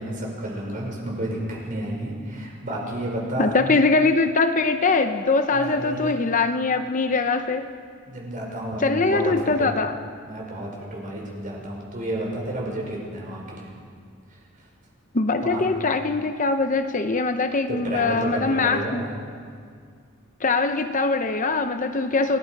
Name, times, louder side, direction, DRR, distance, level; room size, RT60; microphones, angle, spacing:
voice 1, 0.0-3.5 5.5-6.1 8.1-9.7 10.2-13.7 15.4-15.6 17.7-19.1, right 1 dB, 40° right, -2 dB, 5.8 m, -31 dB
voice 2, 3.4-7.7 8.8-9.9 15.1-19.1 20.4-22.4, left 3 dB, 35° left, 8 dB, 0.8 m, -22 dB
28.0 x 18.5 x 5.4 m, 2.1 s
head